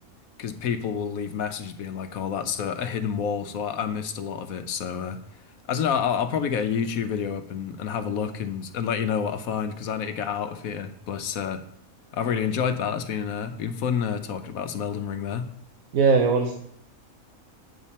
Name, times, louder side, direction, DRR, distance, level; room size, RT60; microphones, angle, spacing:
voice 1, 0.4-5.2 5.7-11.6 12.1-15.5, left 7 dB, 85° left, 9 dB, 1.2 m, -28 dB
voice 2, 15.9-16.5, right 4 dB, 80° right, 3 dB, 1.3 m, -19 dB
9.0 x 6.7 x 4.2 m, 0.69 s
omnidirectional pair, 1.4 m